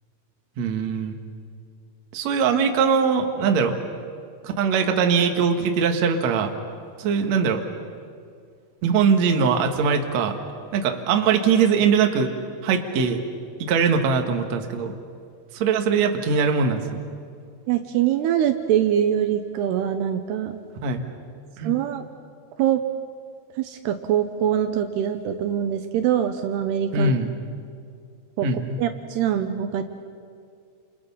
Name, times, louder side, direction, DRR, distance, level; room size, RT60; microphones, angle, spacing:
voice 1, 0.6-1.2 2.1-3.8 4.4-6.5 7.0-7.6 8.8-10.4 10.7-12.3 12.6-13.2 13.6-14.9 15.5-16.8 20.8-21.0 21.6-21.7 26.9-27.3 28.4-28.8, right 5 dB, 55° right, 4 dB, 2.0 m, -21 dB
voice 2, 17.7-20.6 21.6-22.0 22.6-22.8 23.6-27.1 28.4-28.5 28.8-29.8, right 10 dB, 75° right, 7 dB, 2.7 m, -23 dB
29.0 x 28.5 x 5.6 m, 2.3 s
omnidirectional pair, 5.2 m